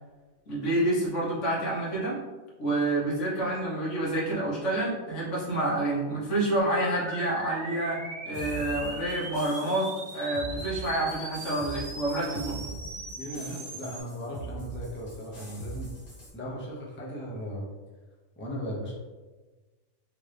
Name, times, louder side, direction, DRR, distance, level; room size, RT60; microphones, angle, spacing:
voice 1, 0.5-2.2 2.6-8.0 8.3-12.6, right 1 dB, 85° left, -6 dB, 1.5 m, -28 dB
sound 1, 6.6-14.0, right 2 dB, 75° right, 1.1 m, -40 dB
sound 2, 8.3-16.3, right 3 dB, 55° left, 1.3 m, -42 dB
voice 2, 13.2-15.9 16.3-17.7 18.4-19.0, equal, 15° left, -4 dB, 0.6 m, -37 dB
3.6 x 2.6 x 3.2 m, 1.3 s
omnidirectional pair, 1.2 m